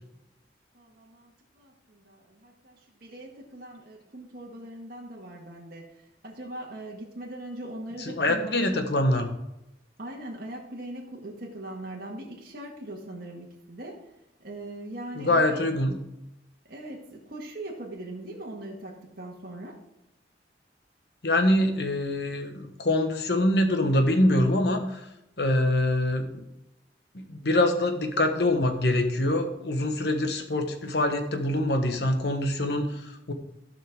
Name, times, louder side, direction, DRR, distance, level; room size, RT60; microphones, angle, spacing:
voice 1, 0.7-8.9 10.0-14.1 14.4-15.6 16.7-19.8, right 1 dB, 55° right, -2 dB, 1.6 m, -41 dB
voice 2, 8.1-9.3 15.2-16.0 21.2-25.0 25.4-26.3 27.1-33.3, left 1 dB, 60° left, 6 dB, 1.2 m, -24 dB
15.5 x 5.6 x 3.6 m, 0.88 s
head